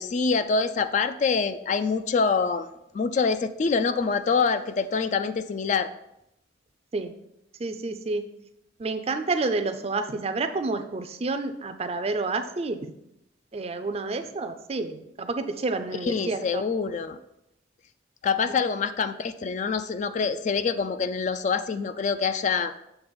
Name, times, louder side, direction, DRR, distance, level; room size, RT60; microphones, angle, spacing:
voice 1, 0.0-2.7 2.9-5.9 16.0-17.2 18.2-22.7, left 5 dB, 40° left, 11 dB, 0.3 m, -25 dB
voice 2, 7.6-8.2 8.8-12.9 13.5-16.6, right 3 dB, 35° right, 8 dB, 0.4 m, -29 dB
7.2 x 3.4 x 5.2 m, 0.83 s
head